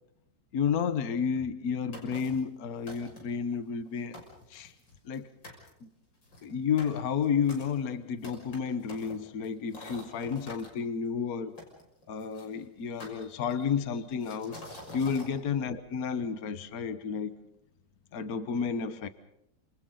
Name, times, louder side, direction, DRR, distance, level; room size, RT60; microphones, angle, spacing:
voice 1, 0.5-4.2 4.5-4.7 5.0-5.3 5.8-5.9 6.4-11.6 12.1-14.6 14.9-17.4 18.1-19.1, left 6 dB, 55° left, 10 dB, 1.7 m, -31 dB
sound 1, 1.9-2.5 2.9-3.4 3.9-4.0 4.1-5.2 5.4-5.7 6.2-10.7 11.6-12.5 13.0-13.7 14.2-15.3, left 1 dB, 75° left, 6.8 m, -47 dB
29.5 x 28.0 x 4.0 m, 0.79 s
omnidirectional pair, 2.0 m